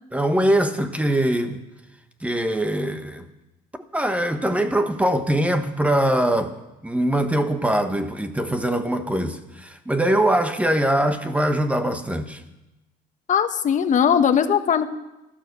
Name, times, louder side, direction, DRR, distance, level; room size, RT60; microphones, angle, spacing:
voice 1, 0.1-1.6 2.2-3.3 3.9-6.5 6.8-12.4, right 1 dB, 10° right, 1.3 m, -22 dB
voice 2, 13.3-14.9, left 8 dB, 50° left, 1.1 m, -19 dB
15.0 x 13.0 x 6.9 m
cardioid pair, 110°, 17 cm